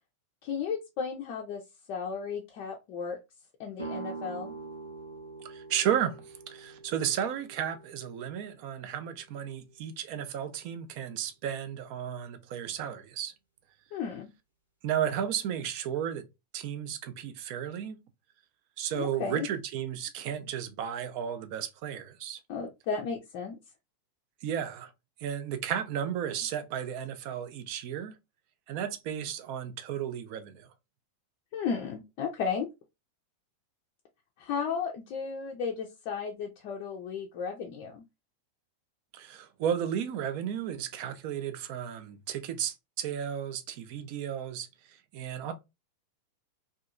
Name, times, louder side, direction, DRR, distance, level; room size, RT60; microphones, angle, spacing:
voice 1, 0.4-1.6 1.9-3.2 3.6-4.5 13.9-14.3 18.9-19.5 22.5-23.6 31.5-32.7 34.4-38.0, left 6 dB, 45° left, 0.4 m, -34 dB
sound 1, 3.8-9.5, right 4 dB, 85° right, 0.7 m, -44 dB
voice 2, 5.4-13.3 14.8-16.3 16.5-18.0 18.8-22.4 24.4-24.9 25.2-28.1 28.7-30.7 39.1-44.7 45.1-45.5, right 9 dB, 45° right, 0.4 m, -33 dB
2.7 x 2.3 x 2.3 m
figure-of-eight pair, 90°, 0 cm